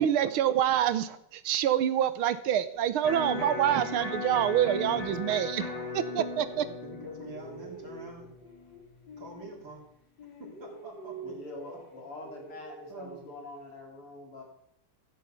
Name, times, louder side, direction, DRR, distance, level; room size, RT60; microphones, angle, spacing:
voice 1, 0.0-6.6, right 10 dB, 80° right, 13 dB, 1.7 m, -27 dB
Electric guitar, 3.0-9.1, left 3 dB, 20° left, 1.4 m, -38 dB
voice 2, 3.1-3.5 6.3-8.4 9.2-9.8 10.4-11.3 12.9-13.2, right 2 dB, 60° right, -2 dB, 4.0 m, -45 dB
voice 3, 4.9-5.2 11.2-14.4, left 2 dB, 85° left, 0 dB, 4.2 m, -44 dB
sound 1, 5.2-6.7 7.0-9.9 10.2-13.7, right 2 dB, 55° left, 3.2 m, -48 dB
15.0 x 10.0 x 5.7 m, 0.75 s
omnidirectional pair, 2.4 m